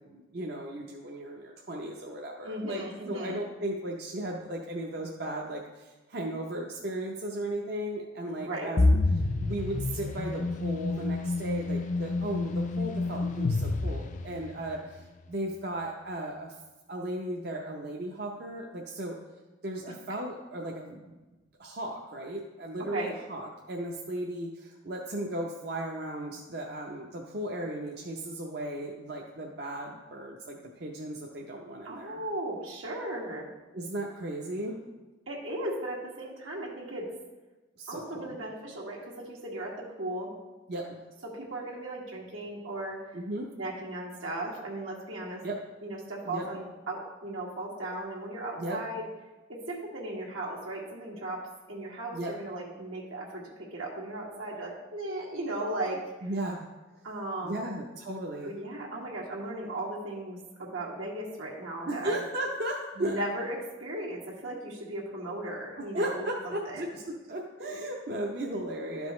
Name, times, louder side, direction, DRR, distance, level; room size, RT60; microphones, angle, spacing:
voice 1, 0.1-16.5 16.9-19.2 19.6-21.2 21.6-32.2 33.7-34.8 37.8-38.4 40.7-41.0 43.1-43.5 45.4-45.6 46.2-46.4 48.6-48.8 52.1-52.3 56.2-56.7 57.4-58.5 61.9-63.2 65.8-66.9 67.3-69.1, right 1 dB, 50° right, -1 dB, 0.7 m, -36 dB
voice 2, 2.4-3.4 8.4-8.7 22.8-23.1 31.8-33.5 35.3-37.1 37.9-40.3 41.2-43.2 43.6-45.4 45.8-49.1 49.5-56.0 57.0-57.7 58.4-62.2 63.0-66.8, right 1 dB, 85° right, -3 dB, 1.9 m, -36 dB
sound 1, 8.8-14.7, left 2 dB, 40° left, 0.4 m, -28 dB
12.0 x 5.2 x 3.1 m, 1.2 s
head